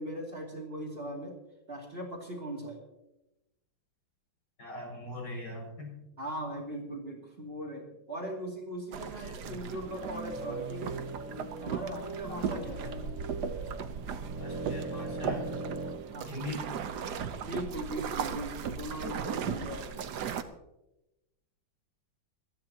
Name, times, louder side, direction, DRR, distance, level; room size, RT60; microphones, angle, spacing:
voice 1, 0.0-1.4 1.7-2.8 6.2-11.0 11.6-12.9 16.1-16.3 17.4-20.0, right 1 dB, 30° right, -2 dB, 2.9 m, -39 dB
voice 2, 4.6-5.9 9.2-9.6 12.3-13.0 14.4-15.5 16.3-16.7, left 1 dB, 60° left, -1 dB, 6.9 m, -41 dB
sound 1, 8.9-20.4, right 7 dB, 65° right, 1.4 m, -37 dB
sound 2, 9.8-16.0, right 3 dB, 80° right, 2.9 m, -40 dB
27.5 x 11.0 x 2.9 m, 0.94 s
omnidirectional pair, 2.0 m